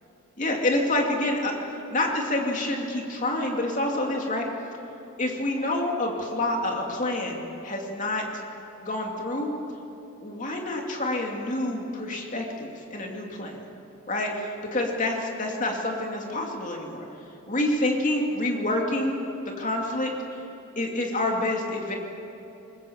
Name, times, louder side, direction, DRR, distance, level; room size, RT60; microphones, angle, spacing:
voice 1, 0.4-1.5 1.9-4.5 5.2-8.2 8.8-9.5 10.2-13.6 14.1-17.1 17.5-19.2 19.6-20.1 20.8-21.9, left 1 dB, 35° left, 1 dB, 2.6 m, -27 dB
21.0 x 20.5 x 7.2 m, 2.9 s
head